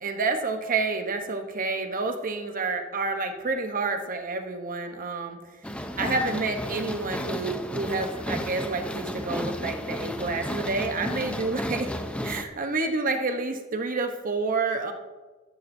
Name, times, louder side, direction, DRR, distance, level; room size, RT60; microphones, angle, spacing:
voice 1, 0.0-5.4 6.0-11.9 12.2-14.9, right 3 dB, 40° right, 5 dB, 0.9 m, -29 dB
sound 1, 5.6-12.4, equal, 5° left, 0.7 m, -33 dB
14.0 x 11.5 x 2.7 m, 1.3 s
head